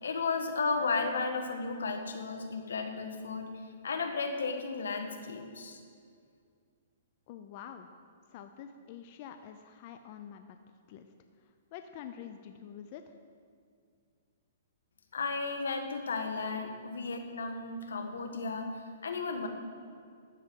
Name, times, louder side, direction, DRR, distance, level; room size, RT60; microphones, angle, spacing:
voice 1, 0.0-3.5 3.8-5.8 15.1-19.5, left 4 dB, 90° left, 5 dB, 1.4 m, -34 dB
voice 2, 7.3-7.9 8.3-10.6 10.9-11.1 11.4-13.1, left 9 dB, 45° left, 7 dB, 0.6 m, -47 dB
13.0 x 5.1 x 7.6 m, 2.2 s
hypercardioid pair, 140°, 0 cm